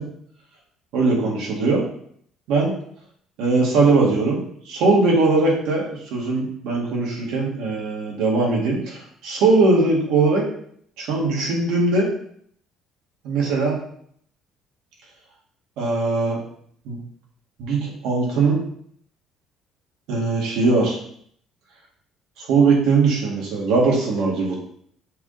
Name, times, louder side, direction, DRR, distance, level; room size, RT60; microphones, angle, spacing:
voice 1, 0.9-1.8 2.5-2.7 3.4-10.4 11.0-12.1 13.2-13.8 15.8-16.4 16.9-17.0 17.6-18.6 20.1-21.0 22.4-24.7, right 3 dB, 75° right, -3 dB, 2.1 m, -20 dB
6.8 x 3.7 x 4.1 m, 0.64 s
cardioid pair, 165°, 0 cm